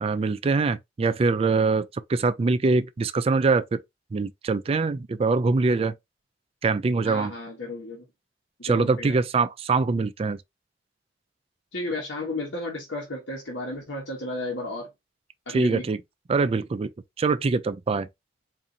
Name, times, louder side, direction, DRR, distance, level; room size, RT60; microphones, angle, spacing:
voice 1, 0.0-3.8 4.1-5.9 6.6-7.3 8.6-10.4 15.5-16.0 16.3-16.9 17.2-18.1, right 4 dB, 35° right, 0.3 m, -23 dB
voice 2, 7.0-8.0 8.6-9.2 11.7-14.9 15.5-15.9, left 2 dB, 80° left, 1.1 m, -33 dB
3.9 x 2.6 x 2.7 m
head